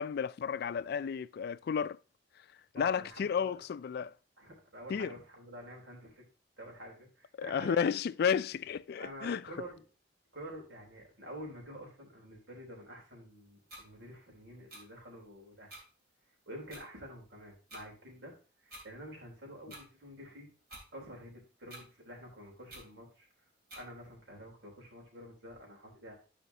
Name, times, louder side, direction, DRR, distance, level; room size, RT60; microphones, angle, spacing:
voice 1, 0.0-2.0 2.7-4.1 4.9-5.1 7.4-9.4, left 7 dB, 55° left, 0.3 m, -32 dB
voice 2, 2.7-3.6 4.4-6.2 6.6-7.8 9.0-9.8 10.3-15.8 16.5-18.3 18.6-20.5 20.9-23.3 23.7-26.1, equal, 90° right, 3.4 m, -48 dB
sound 1, 13.7-13.8 14.7-14.8 15.7-15.8 16.7-16.8 17.7-17.8 18.7-18.8 19.7-19.8 20.7-20.9 21.7-21.8 22.7-22.8 23.7-23.8, right 1 dB, 55° right, 3.1 m, -48 dB
11.5 x 5.0 x 2.8 m
head